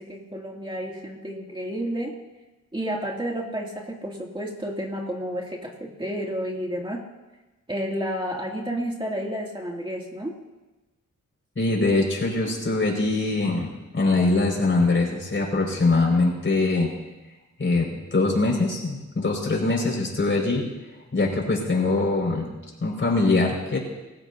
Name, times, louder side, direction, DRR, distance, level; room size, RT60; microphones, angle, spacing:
voice 1, 0.0-2.2 2.7-7.0 7.7-10.4, equal, 15° right, -2 dB, 2.8 m, -31 dB
voice 2, 11.6-13.7 13.9-16.9 17.6-20.6 21.1-22.5 22.8-23.8, left 3 dB, 40° left, -1 dB, 5.8 m, -22 dB
24.0 x 15.0 x 2.8 m, 1.1 s
cardioid pair, 85°, 31 cm